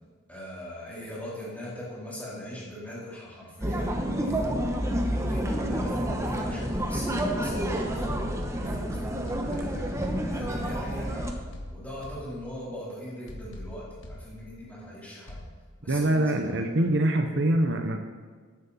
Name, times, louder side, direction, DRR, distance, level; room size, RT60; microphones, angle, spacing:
voice 1, 0.3-4.7 5.1-8.1 8.5-10.0 10.3-11.3 11.7-15.4 15.8-16.6, left 1 dB, 5° left, -7 dB, 3.6 m, -40 dB
sound 1, 3.6-11.3, equal, 15° right, 1.0 m, -29 dB
sound 2, 7.5-8.8 9.3-10.8 11.3-12.8 13.3-14.8 15.3-15.5, left 1 dB, 65° left, 1.5 m, -44 dB
voice 2, 15.9-18.0, right 1 dB, 55° right, 5 dB, 0.8 m, -24 dB
14.0 x 10.5 x 4.2 m, 1.5 s
head